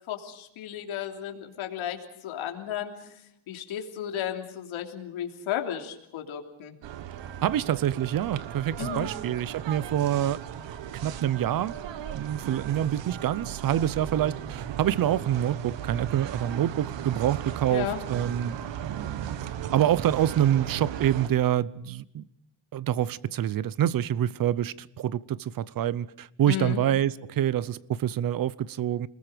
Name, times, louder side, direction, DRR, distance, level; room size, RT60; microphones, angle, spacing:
voice 1, 0.1-6.8 8.8-9.1 17.7-18.0 26.5-26.8, left 10 dB, 70° left, 3.3 m, -34 dB
sound 1, 6.8-21.3, right 10 dB, 60° right, 1.5 m, -36 dB
voice 2, 7.4-10.4 10.9-11.7 12.1-18.6 18.8-22.3 22.7-29.1, right 11 dB, 45° right, 0.8 m, -26 dB
29.5 x 21.0 x 5.1 m
cardioid pair, 130°, 50 cm